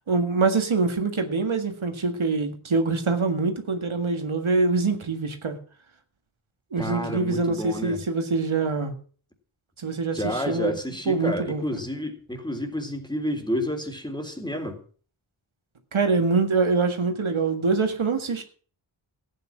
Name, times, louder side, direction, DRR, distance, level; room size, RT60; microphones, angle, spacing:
voice 1, 0.1-5.6 6.7-8.9 9.8-10.7 11.1-11.8 15.9-18.4, right 4 dB, 75° right, 6 dB, 1.9 m, -24 dB
voice 2, 6.8-8.0 10.1-14.8, equal, 10° left, 4 dB, 3.4 m, -30 dB
14.5 x 9.2 x 6.1 m, 0.42 s
wide cardioid pair, 65°, 48 cm